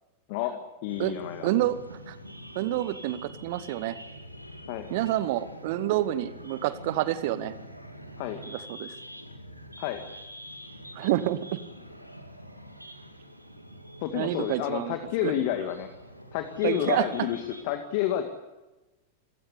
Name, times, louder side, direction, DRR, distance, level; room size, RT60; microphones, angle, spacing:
voice 1, 0.8-1.5 4.7-4.9 8.2-8.4 9.8-10.0 14.0-15.9 16.3-18.2, left 12 dB, 50° left, 7 dB, 2.0 m, -29 dB
sound 1, 0.9-17.6, equal, 90° right, 2.2 m, -45 dB
voice 2, 1.4-2.2 2.5-4.0 4.9-7.5 8.5-8.9 10.9-11.6 14.1-14.9 15.2-15.3 16.6-17.1, right 14 dB, 50° right, 15 dB, 1.1 m, -28 dB
27.5 x 16.5 x 8.4 m, 1.1 s
figure-of-eight pair, 90°, 0 cm